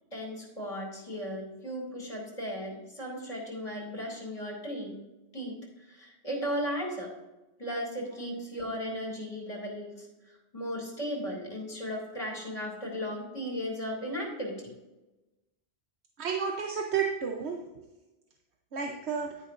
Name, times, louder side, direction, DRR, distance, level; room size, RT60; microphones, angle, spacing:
voice 1, 0.1-5.0 5.3-5.6 5.9-7.1 7.6-10.1 10.5-14.7, equal, 30° left, -1 dB, 2.5 m, -36 dB
voice 2, 16.2-17.8 18.7-19.3, right 6 dB, 75° right, 2 dB, 1.1 m, -31 dB
10.5 x 9.8 x 2.5 m, 1.1 s
omnidirectional pair, 1.1 m